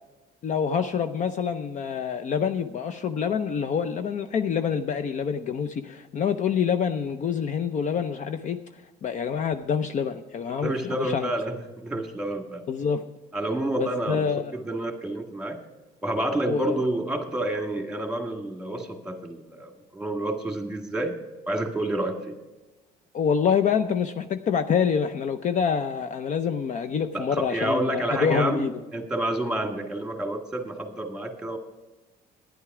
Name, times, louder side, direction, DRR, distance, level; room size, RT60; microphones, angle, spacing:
voice 1, 0.4-8.6 9.0-11.3 12.7-13.0 13.8-14.6 16.5-16.8 23.1-28.7, left 7 dB, 45° left, 9 dB, 0.6 m, -26 dB
voice 2, 10.6-12.6 13.3-14.3 14.5-15.6 16.0-21.1 21.5-22.4 27.1-31.6, right 1 dB, 5° right, 4 dB, 1.7 m, -29 dB
11.0 x 10.0 x 4.8 m, 1.1 s
cardioid pair, 110°, 17 cm